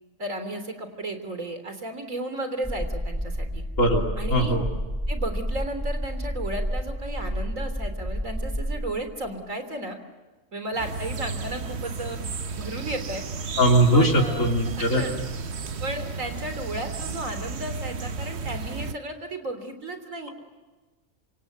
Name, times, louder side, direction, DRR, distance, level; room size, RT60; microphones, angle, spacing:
voice 1, 0.2-3.6 4.2-4.6 5.1-10.0 10.5-12.2 12.5-13.2 13.9-15.1 15.8-20.3, right 1 dB, 90° right, 8 dB, 3.8 m, -34 dB
sound 1, 2.6-9.2, equal, 5° right, 3.0 m, -30 dB
voice 2, 4.3-4.6 13.6-15.0, right 1 dB, 80° left, 0 dB, 3.8 m, -20 dB
sound 2, 10.8-18.9, right 4 dB, 60° right, 1.3 m, -33 dB
27.0 x 26.0 x 8.1 m, 1.2 s
omnidirectional pair, 1.3 m